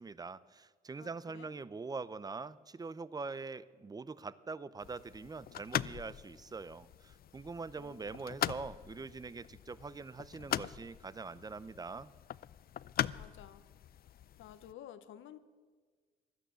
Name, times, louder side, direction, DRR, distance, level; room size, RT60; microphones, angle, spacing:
voice 1, 0.0-12.1, right 4 dB, 20° right, 18 dB, 0.5 m, -43 dB
voice 2, 1.0-1.5 7.8-8.2 13.1-13.7 14.4-15.4, left 10 dB, 80° left, 12 dB, 0.8 m, -52 dB
sound 1, 4.8-14.7, left 11 dB, 50° left, 0.4 m, -41 dB
16.5 x 12.0 x 6.8 m, 1.5 s
cardioid pair, 90°, 20 cm